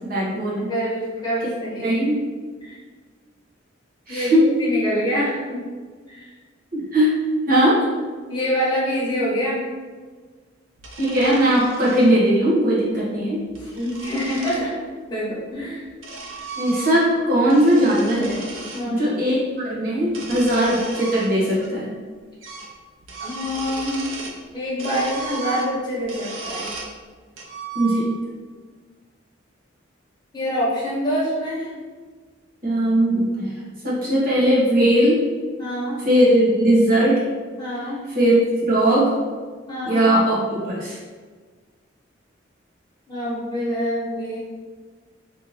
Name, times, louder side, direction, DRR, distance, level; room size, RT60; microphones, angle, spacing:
voice 1, 0.1-0.7 1.8-2.2 4.1-4.5 6.7-7.2 7.5-7.8 11.0-13.4 16.6-18.4 18.8-21.9 27.7-28.1 32.6-33.5 33.8-35.2 36.0-37.2 38.1-39.1 39.8-41.0, right 1 dB, 45° right, -7 dB, 1.0 m, -19 dB
voice 2, 0.7-2.2 2.6-2.7 4.1-5.7 6.1-6.3 8.3-9.6 13.6-14.7 15.1-15.8 18.7-19.1 23.2-24.0 24.5-26.7 30.3-31.7 35.6-36.0 37.6-38.0 39.7-40.0 43.1-44.4, equal, 20° left, -9 dB, 1.1 m, -26 dB
sound 1, 10.8-12.1 13.3-14.7 15.6-17.2 17.5-18.9 20.0-21.7 22.0-22.1 22.4-22.7 23.0-24.4 24.8-27.0 27.4-28.3, right 3 dB, 85° right, 0.5 m, -35 dB
3.9 x 2.7 x 2.9 m, 1.5 s
head